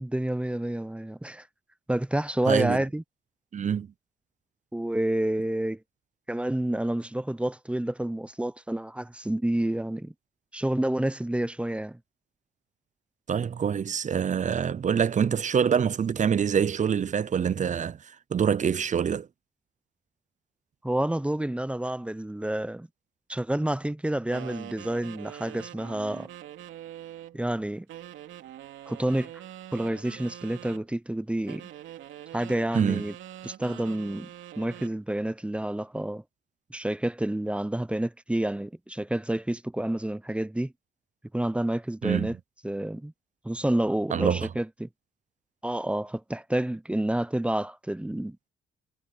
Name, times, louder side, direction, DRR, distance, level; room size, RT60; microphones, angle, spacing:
voice 1, 0.0-1.5 1.9-3.0 4.7-5.8 6.3-10.1 10.5-12.0 20.8-22.9 23.3-26.3 27.3-27.9 28.9-29.3 29.7-31.7 32.3-33.1 33.4-34.3 34.6-36.2 36.7-40.7 41.3-42.3 42.6-43.1 43.4-44.9 45.6-48.4, right 1 dB, 5° right, 0.6 m, -29 dB
voice 2, 2.5-2.8 3.5-3.9 13.3-19.3 32.7-33.0 42.0-42.3 44.1-44.5, right 7 dB, 40° right, 0.7 m, -25 dB
sound 1, 24.3-27.4 27.9-30.8 31.5-35.0, right 12 dB, 80° right, 2.6 m, -44 dB
cardioid pair, 90°, 20 cm